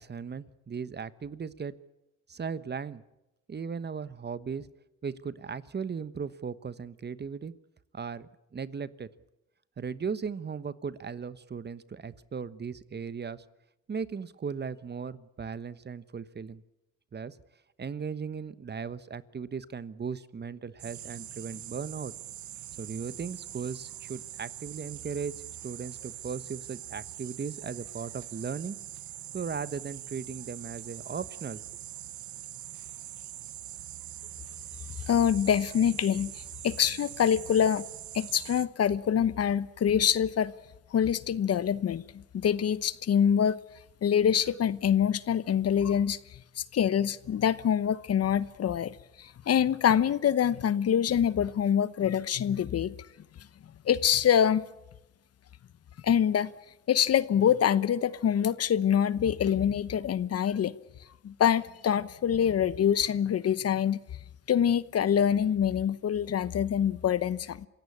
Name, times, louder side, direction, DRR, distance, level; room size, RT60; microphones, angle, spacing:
voice 1, 0.0-1.7 2.3-3.0 3.5-4.7 5.0-7.5 7.9-9.1 9.8-13.4 13.9-16.6 17.1-17.4 17.8-22.1 22.8-25.3 25.6-28.8 29.3-31.6, right 6 dB, 35° right, 1.1 m, -37 dB
sound 1, 20.8-38.7, right 12 dB, 70° right, 1.1 m, -43 dB
voice 2, 35.1-37.8 38.1-40.5 40.9-42.0 42.3-43.6 44.0-46.2 46.6-52.9 53.8-54.6 56.0-56.5 56.9-60.7 61.2-64.0 64.5-67.7, left 9 dB, 55° left, 1.0 m, -25 dB
27.0 x 16.5 x 8.6 m
cardioid pair, 90°, 30 cm